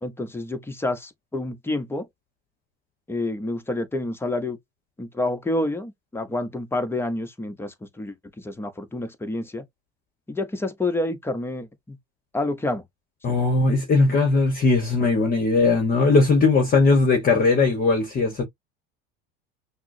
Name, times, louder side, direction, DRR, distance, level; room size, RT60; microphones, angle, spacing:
voice 1, 0.0-2.0 3.1-4.6 5.0-9.6 10.3-12.0 12.3-12.8 13.3-13.4, left 2 dB, 10° left, 0.8 m, -28 dB
voice 2, 13.2-18.4, left 3 dB, 30° left, 1.1 m, -19 dB
5.9 x 2.0 x 2.6 m
supercardioid pair, 115°, 29 cm